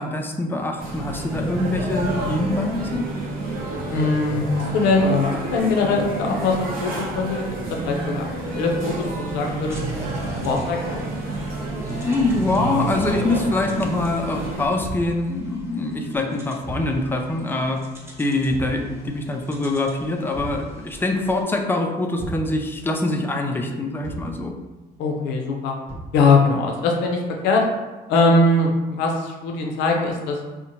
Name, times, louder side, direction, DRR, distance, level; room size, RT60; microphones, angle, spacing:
voice 1, 0.0-3.1 12.0-17.8 18.2-24.5, left 2 dB, 10° left, 3 dB, 0.3 m, -24 dB
sound 1, 0.8-14.7, right 2 dB, 60° right, 0.7 m, -29 dB
voice 2, 3.9-9.8 10.4-11.0 25.0-25.7 26.1-27.6 28.1-30.4, left 3 dB, 90° left, 1 dB, 0.5 m, -21 dB
sound 2, 9.7-21.4, equal, 15° right, 0.7 m, -41 dB
Thump thud, 12.9-13.3 14.8-15.1 16.6-17.0 18.5-18.8 20.3-20.7 22.2-22.5 24.0-24.4 25.9-26.2, right 1 dB, 40° right, 0.9 m, -33 dB
2.6 x 2.1 x 2.9 m, 1.2 s
cardioid pair, 110°, 17 cm